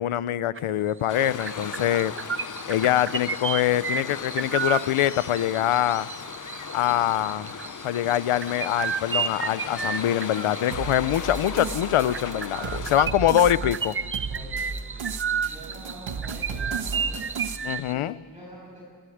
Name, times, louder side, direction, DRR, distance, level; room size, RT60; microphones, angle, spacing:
voice 1, 0.0-2.1 2.7-6.1 6.7-7.5 7.8-13.9 17.6-18.1, left 12 dB, 85° left, 17 dB, 0.8 m, -24 dB
sound 1, 0.6-0.8 1.1-17.9, right 6 dB, 25° right, 0.7 m, -33 dB
Waves surf, 1.1-13.0, left 6 dB, 40° left, 0.9 m, -37 dB
sound 2, 10.7-17.6, right 5 dB, 65° right, 1.7 m, -35 dB
voice 2, 12.7-13.2 14.3-15.1 15.4-17.3 17.9-18.8, equal, 10° right, -4 dB, 7.7 m, -46 dB
26.0 x 14.5 x 9.4 m, 2.1 s
wide cardioid pair, 110°, 49 cm